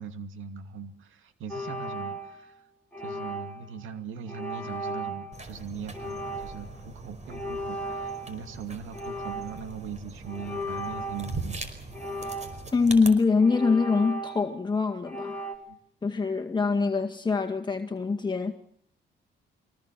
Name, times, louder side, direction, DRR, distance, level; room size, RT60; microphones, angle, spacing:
voice 1, 0.0-2.7 3.0-11.6 15.7-15.8, right 6 dB, 80° right, 8 dB, 2.5 m, -40 dB
sound 1, 1.5-2.5 2.9-3.7 4.3-5.3 5.9-6.8 7.3-8.6 8.9-9.7 10.3-11.4 11.9-12.8 13.4-14.6 15.0-15.6, right 1 dB, 5° left, 4.2 m, -36 dB
sound 2, 5.3-13.1, right 3 dB, 35° right, 5.1 m, -41 dB
voice 2, 12.7-15.3 16.0-18.5, left 4 dB, 20° left, 2 dB, 1.9 m, -24 dB
25.0 x 19.0 x 7.6 m, 0.66 s
cardioid pair, 90°, 20 cm